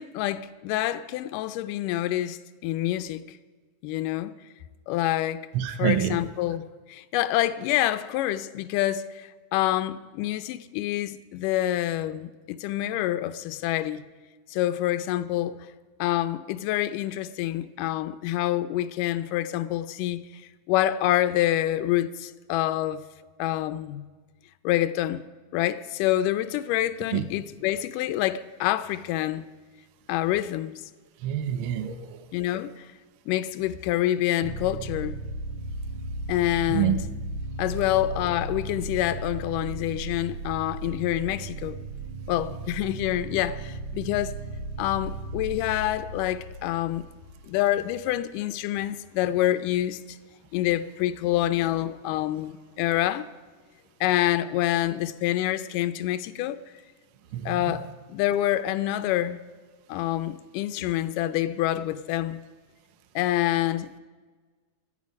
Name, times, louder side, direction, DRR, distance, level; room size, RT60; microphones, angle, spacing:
voice 1, 0.0-3.4 3.8-4.3 4.9-5.4 5.8-14.0 14.5-15.6 16.0-20.2 20.7-23.0 23.4-24.1 24.6-25.2 25.5-29.5 30.1-30.8 32.3-32.8 33.3-35.2 36.3-37.0 37.6-41.8 42.3-44.3 44.8-47.0 47.4-50.2 50.5-53.3 54.0-56.6 57.5-59.4 59.9-62.4 63.2-64.0, left 14 dB, 85° left, 2.2 m, -27 dB
voice 2, 5.5-6.2 27.1-27.2 31.2-32.2 36.7-37.0 57.3-57.8, right 10 dB, 80° right, 1.2 m, -27 dB
sound 1, 34.4-47.8, right 2 dB, 55° right, 1.8 m, -36 dB
18.0 x 12.5 x 5.3 m
omnidirectional pair, 3.7 m